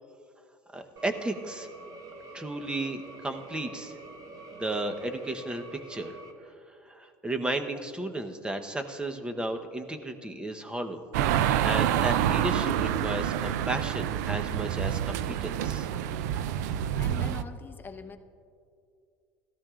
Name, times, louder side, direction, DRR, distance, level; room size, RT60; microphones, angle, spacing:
voice 1, 0.7-1.7 2.3-3.9 4.5-6.2 6.9-11.0 11.4-15.9, right 2 dB, 10° right, 6 dB, 1.0 m, -34 dB
sound 1, 1.0-6.3, right 3 dB, 40° right, 1.2 m, -46 dB
sound 2, 11.1-17.4, right 10 dB, 80° right, 0.4 m, -27 dB
voice 2, 16.9-18.2, left 5 dB, 20° left, 6 dB, 0.9 m, -43 dB
17.5 x 13.5 x 2.5 m, 2.4 s
supercardioid pair, 95°, 9 cm